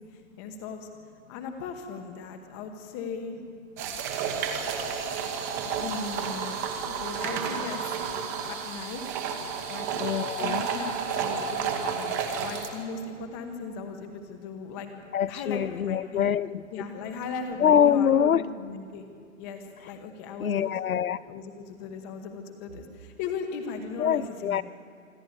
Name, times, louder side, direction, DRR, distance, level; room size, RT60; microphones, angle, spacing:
voice 1, 0.1-0.9 1.3-3.4 5.8-6.6 6.8-7.9 8.4-9.0 9.7-9.9 10.4-12.2 12.4-16.2 16.7-19.0 19.3-20.7 21.3-24.6, left 5 dB, 15° left, 1.1 m, -38 dB
sound 1, 3.8-12.7, right 6 dB, 15° right, 1.0 m, -31 dB
voice 2, 9.9-10.6 15.1-16.6 17.6-18.5 20.4-21.2 24.0-24.6, left 8 dB, 90° left, 0.9 m, -24 dB
26.0 x 13.5 x 9.5 m
hypercardioid pair, 165°, 41 cm